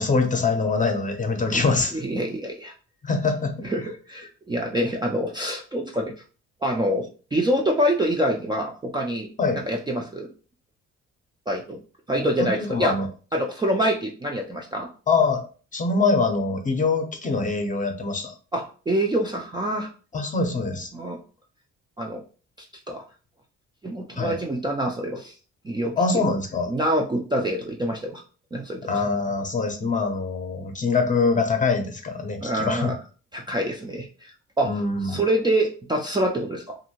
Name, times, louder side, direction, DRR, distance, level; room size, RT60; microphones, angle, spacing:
voice 1, 0.0-2.0 3.0-3.5 9.4-9.6 12.2-13.1 15.1-15.4 15.7-18.3 20.1-20.9 24.1-24.4 26.0-26.7 28.8-32.9 34.6-35.2, left 4 dB, 25° left, 5 dB, 0.6 m, -24 dB
voice 2, 2.0-2.7 3.6-6.1 6.6-9.3 9.6-10.3 11.5-11.8 12.1-13.0 13.3-14.9 18.5-19.9 20.9-21.2 22.0-22.2 22.9-23.0 23.8-25.3 25.6-25.9 26.7-28.2 28.5-29.0 32.4-33.0 33.3-36.8, right 1 dB, 15° right, 0 dB, 0.4 m, -26 dB
2.6 x 2.6 x 2.9 m, 0.38 s
cardioid pair, 90°, 30 cm